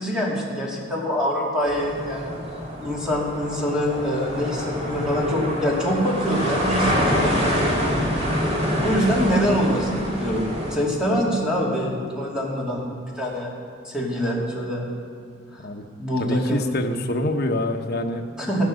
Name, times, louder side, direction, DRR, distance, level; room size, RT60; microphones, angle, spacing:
voice 1, 0.0-2.4 2.8-8.1 8.7-13.5 13.8-14.9 15.5-15.6 16.0-16.7 18.4-18.7, equal, 5° right, -4 dB, 2.6 m, -25 dB
sound 1, 1.6-10.8, equal, 30° right, 2.5 m, -26 dB
voice 2, 16.2-18.7, left 1 dB, 50° left, 3 dB, 1.0 m, -26 dB
14.5 x 12.0 x 6.4 m, 2.2 s
head